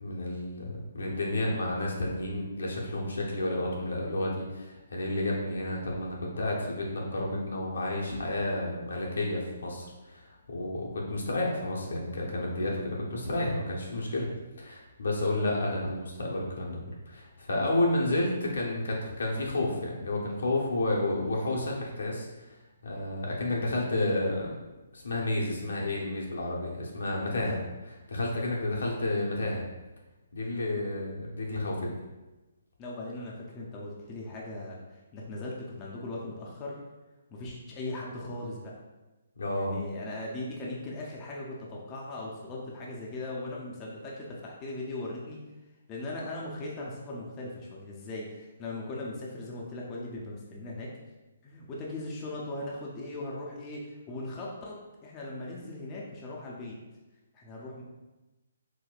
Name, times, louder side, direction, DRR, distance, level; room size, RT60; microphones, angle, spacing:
voice 1, 0.0-10.2 10.5-14.3 14.6-16.8 17.1-22.3 22.8-24.6 24.9-27.6 28.1-29.6 30.3-31.9 39.4-39.8, left 1 dB, 75° left, -2 dB, 0.7 m, -31 dB
voice 2, 27.3-27.7 32.8-36.8 37.3-38.8 39.5-45.4 45.9-50.9 51.4-56.8 57.3-57.8, left 2 dB, 25° left, -3 dB, 0.5 m, -39 dB
4.1 x 2.1 x 2.3 m, 1.1 s
hypercardioid pair, 145°, 0 cm